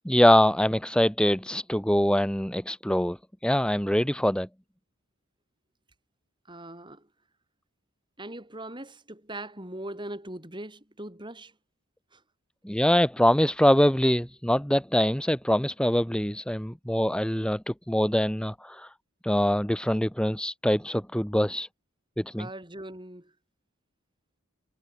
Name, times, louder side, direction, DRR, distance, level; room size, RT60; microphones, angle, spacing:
voice 1, 0.0-3.2 3.4-4.5 12.6-18.9 19.2-21.7 22.2-22.5, equal, 5° left, 1.2 m, -24 dB
voice 2, 6.5-7.1 8.2-11.5 12.1-12.2 22.4-23.3, right 1 dB, 20° right, 6.4 m, -40 dB
head